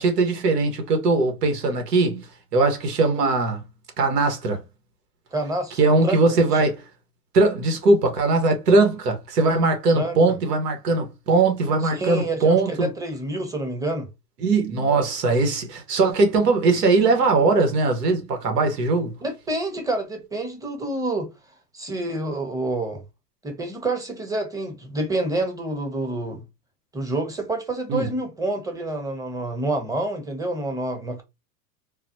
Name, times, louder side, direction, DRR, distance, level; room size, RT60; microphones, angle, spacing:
voice 1, 0.0-3.6 4.0-4.6 5.8-6.7 7.3-12.9 14.4-19.1 27.9-28.1, right 3 dB, 85° right, 1.3 m, -20 dB
voice 2, 5.3-6.2 6.5-6.6 9.9-10.2 11.8-14.1 19.2-21.3 21.7-23.0 23.4-26.4 26.9-31.2, right 2 dB, 5° right, 0.8 m, -28 dB
3.9 x 2.1 x 2.8 m
hypercardioid pair, 110°, 47 cm